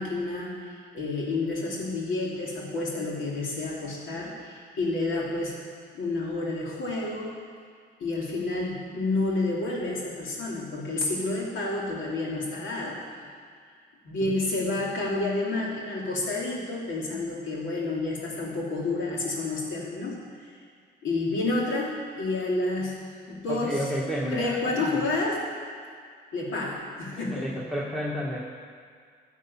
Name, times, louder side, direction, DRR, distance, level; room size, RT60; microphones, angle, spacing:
voice 1, 0.0-5.6 5.9-7.3 8.0-13.0 14.0-20.5 21.0-23.0 23.3-23.9 24.3-25.4 26.3-27.5, left 2 dB, 75° left, -4 dB, 3.0 m, -30 dB
voice 2, 23.5-25.0 27.1-28.4, equal, ahead, -6 dB, 1.6 m, -31 dB
13.5 x 7.3 x 5.6 m, 2.1 s
cardioid pair, 90°, 20 cm